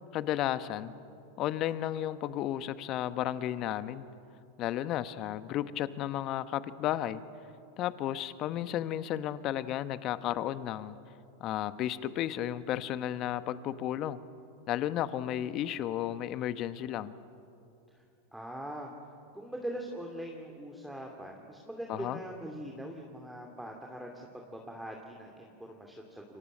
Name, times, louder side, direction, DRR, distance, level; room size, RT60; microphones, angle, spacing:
voice 1, 0.1-0.9 1.4-4.1 4.6-7.2 7.8-11.0 11.4-14.2 14.7-17.1 21.9-22.2, left 12 dB, 45° left, 13 dB, 1.1 m, -33 dB
voice 2, 18.3-18.9 19.3-26.4, right 1 dB, 5° right, 1 dB, 2.6 m, -42 dB
28.5 x 24.0 x 6.7 m, 2.6 s
hypercardioid pair, 95°, 0 cm